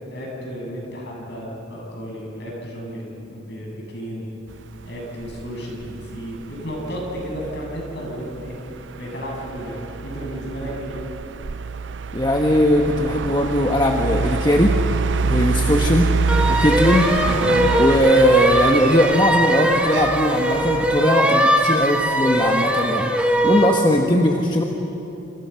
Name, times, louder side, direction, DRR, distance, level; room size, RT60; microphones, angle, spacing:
voice 1, 0.0-4.3 4.8-8.6 9.0-10.9, equal, 60° left, -1 dB, 7.7 m, -33 dB
sound 1, 4.5-21.1, right 4 dB, 70° right, 0.5 m, -26 dB
voice 2, 12.1-14.8 15.2-16.1 16.5-17.1 17.8-24.6, left 1 dB, 25° left, 1 dB, 1.3 m, -19 dB
sound 2, 16.3-23.8, equal, 5° right, 1.7 m, -20 dB
28.0 x 28.0 x 5.8 m, 2.9 s
head